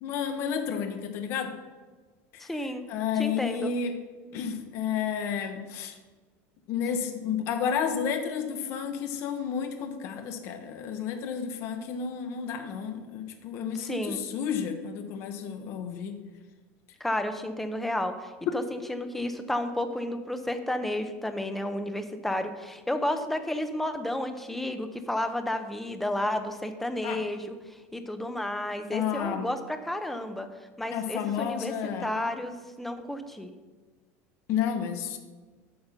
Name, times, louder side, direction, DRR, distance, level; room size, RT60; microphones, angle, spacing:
voice 1, 0.0-1.5 2.3-2.5 2.9-4.0 4.3-6.0 6.7-16.2 18.5-18.6 27.0-27.2 28.9-29.5 30.9-32.1 34.5-35.2, left 7 dB, 40° left, 6 dB, 1.0 m, -31 dB
voice 2, 2.4-2.8 3.2-3.7 13.8-14.2 17.0-30.5 30.8-31.7 32.0-33.5, left 1 dB, 5° left, 8 dB, 0.6 m, -32 dB
8.9 x 5.4 x 6.9 m, 1.3 s
cardioid pair, 170°, 7 cm